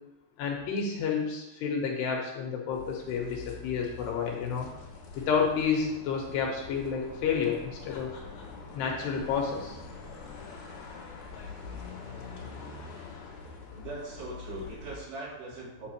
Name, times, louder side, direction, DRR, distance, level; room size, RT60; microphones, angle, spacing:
voice 1, 0.4-4.7 5.2-8.1 8.7-9.8, left 6 dB, 75° left, 0 dB, 2.9 m, -30 dB
sound 1, 2.7-15.0, left 4 dB, 50° left, 2.4 m, -44 dB
voice 2, 13.7-15.9, right 2 dB, 70° right, -7 dB, 4.6 m, -40 dB
8.4 x 7.9 x 3.0 m, 0.94 s
omnidirectional pair, 5.1 m